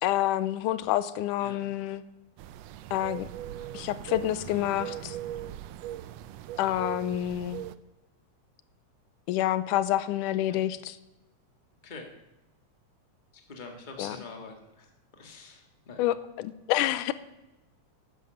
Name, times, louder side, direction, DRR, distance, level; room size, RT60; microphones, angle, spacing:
voice 1, 0.0-2.0 2.9-3.3 3.7-5.2 6.6-7.6 9.3-11.0 14.0-14.2 16.0-17.1, left 13 dB, 90° left, 15 dB, 2.2 m, -28 dB
sound 1, 2.4-7.7, right 12 dB, 85° right, 1.4 m, -40 dB
voice 2, 13.5-14.9 15.2-16.1, left 4 dB, 20° left, 3 dB, 1.5 m, -45 dB
11.5 x 10.5 x 7.8 m, 0.97 s
omnidirectional pair, 3.6 m